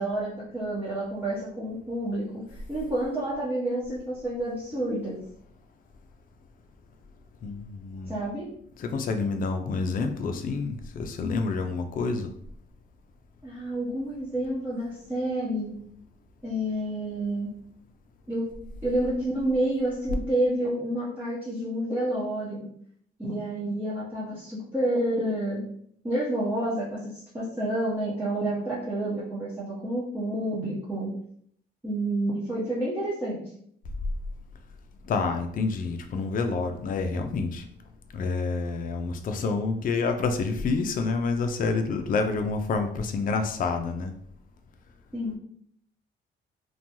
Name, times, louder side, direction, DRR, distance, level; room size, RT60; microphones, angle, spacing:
voice 1, 0.0-5.2 8.1-8.5 13.4-15.8 16.4-17.6 18.3-18.5 18.8-22.7 23.2-25.7 26.0-31.1 31.8-33.5 45.1-45.4, right 1 dB, 10° right, -10 dB, 1.0 m, -29 dB
voice 2, 7.4-8.2 8.8-12.3 35.1-37.6 38.1-44.1, left 4 dB, 45° left, 6 dB, 0.4 m, -28 dB
3.0 x 2.2 x 2.6 m, 0.66 s
cardioid pair, 90°, 20 cm